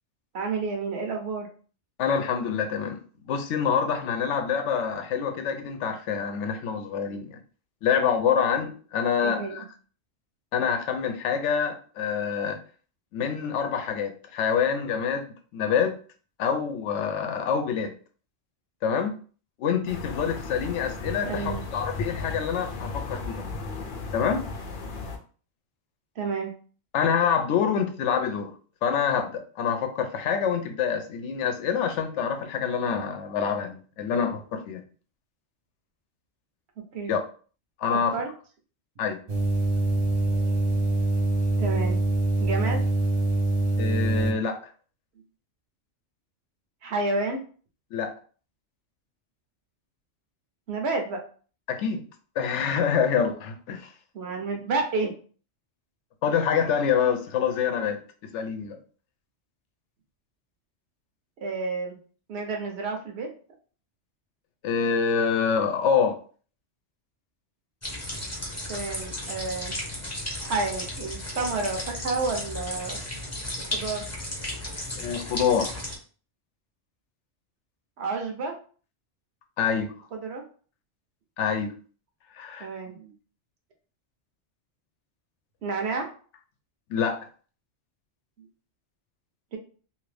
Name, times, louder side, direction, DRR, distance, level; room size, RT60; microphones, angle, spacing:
voice 1, 0.3-1.5 9.2-9.6 21.2-21.6 26.2-26.5 36.9-37.2 38.1-38.3 41.6-42.0 42.4-42.8 46.8-47.4 50.7-51.2 54.1-55.1 61.4-62.0 62.3-63.3 68.7-69.8 70.4-73.0 73.7-74.0 78.0-78.5 80.1-80.4 82.6-83.1 85.6-86.1 89.5-89.6, right 3 dB, 70° right, 1.0 m, -30 dB
voice 2, 2.0-3.0 3.2-7.4 7.8-9.6 10.5-12.6 13.1-15.3 15.5-15.9 16.4-17.9 18.8-19.1 19.6-23.5 24.1-24.4 26.9-28.5 28.8-34.8 37.1-37.2 37.8-38.1 39.0-39.2 43.8-44.6 47.9-48.1 51.7-52.0 52.4-53.9 56.2-58.0 58.3-58.8 64.6-66.2 74.9-75.7 79.6-79.9 81.4-81.7 82.3-82.7 86.9-87.3, left 7 dB, 80° left, 0.9 m, -26 dB
sound 1, 19.9-25.2, left 3 dB, 55° left, 0.7 m, -35 dB
sound 2, 39.3-44.3, right 2 dB, 40° right, 0.7 m, -24 dB
sound 3, 67.8-76.0, left 1 dB, 15° left, 0.7 m, -34 dB
2.8 x 2.5 x 3.2 m
omnidirectional pair, 1.2 m